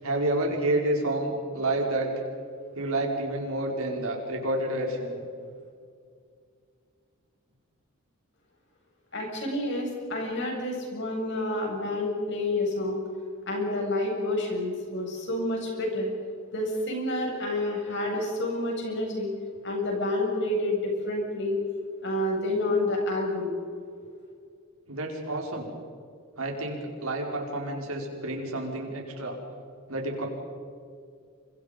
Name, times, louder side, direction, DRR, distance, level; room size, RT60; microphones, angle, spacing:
voice 1, 0.0-2.1 2.7-5.2 24.9-25.7 26.4-29.4 29.9-30.2, right 1 dB, 75° right, 1 dB, 5.1 m, -29 dB
voice 2, 9.1-13.0 13.5-16.1 16.5-19.3 19.6-21.6 22.0-23.5, left 1 dB, 55° left, 0 dB, 7.2 m, -29 dB
29.0 x 25.5 x 5.4 m, 2.2 s
head